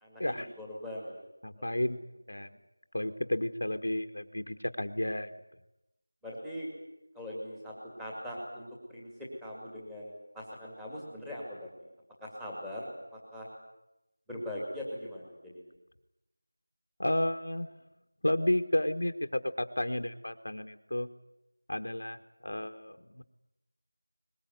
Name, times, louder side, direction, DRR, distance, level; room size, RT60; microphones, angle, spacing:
voice 1, 0.6-1.2 1.6-1.7 6.2-6.7 7.1-11.7 12.2-12.9 13.1-13.5 14.3-15.7, left 1 dB, ahead, -5 dB, 2.3 m, -41 dB
voice 2, 1.4-2.0 2.3-2.6 2.9-5.3 17.0-17.7 18.2-21.1 21.7-22.2 22.4-23.2, left 1 dB, 75° left, 7 dB, 1.6 m, -32 dB
22.0 x 20.5 x 9.3 m, 0.90 s
figure-of-eight pair, 175°, 0 cm